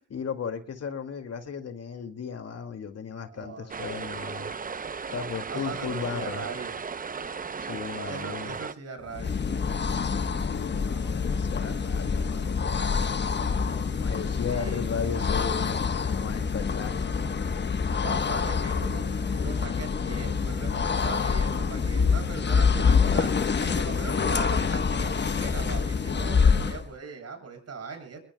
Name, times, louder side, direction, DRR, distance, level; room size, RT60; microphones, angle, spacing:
voice 1, 0.1-4.5 5.1-6.5 7.6-8.6 10.4-13.1 14.0-17.1, left 6 dB, 55° left, 2.4 m, -35 dB
voice 2, 3.3-4.2 5.5-6.7 8.1-9.4 14.5-14.8 18.0-28.2, right 4 dB, 55° right, 7.9 m, -40 dB
sound 1, 3.7-8.7, right 5 dB, 25° right, 0.8 m, -36 dB
sound 2, 9.1-26.9, left 5 dB, 35° left, 1.3 m, -26 dB
28.0 x 21.0 x 2.3 m
cardioid pair, 85°, 31 cm